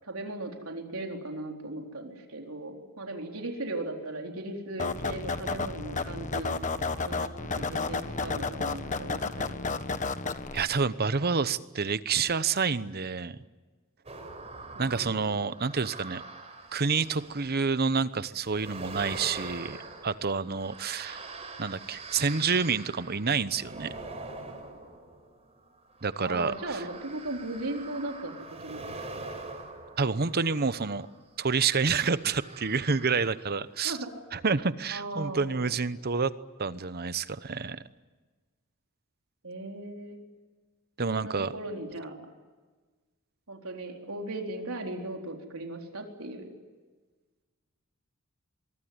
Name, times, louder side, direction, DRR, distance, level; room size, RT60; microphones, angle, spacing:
voice 1, 0.0-6.6 7.1-9.5 14.7-15.2 26.2-29.2 33.8-34.1 34.9-35.7 39.4-40.2 41.1-42.2 43.5-46.5, right 2 dB, 85° right, 2 dB, 4.1 m, -38 dB
sound 1, 4.8-10.6, left 4 dB, 35° left, 1.3 m, -32 dB
voice 2, 10.5-13.4 14.8-16.2 16.7-19.8 20.0-21.2 21.6-23.9 26.0-26.8 30.0-31.1 31.4-34.0 34.3-36.3 36.6-37.8 41.0-41.5, right 5 dB, 50° right, 14 dB, 1.0 m, -28 dB
sound 2, 14.1-17.7 18.4-31.2 32.0-33.6 33.9-34.0, right 3 dB, 30° right, 4.8 m, -44 dB
24.0 x 23.5 x 9.6 m, 1.4 s
head